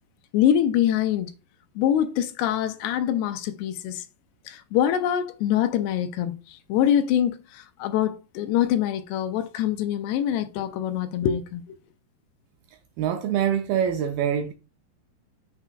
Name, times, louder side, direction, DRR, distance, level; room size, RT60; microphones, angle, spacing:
voice 1, 0.3-1.3 1.8-4.0 4.5-6.4 6.7-11.6, left 10 dB, 80° left, 2.7 m, -24 dB
voice 2, 13.0-14.5, right 9 dB, 85° right, 2.1 m, -24 dB
6.7 x 6.1 x 2.3 m
omnidirectional pair, 4.9 m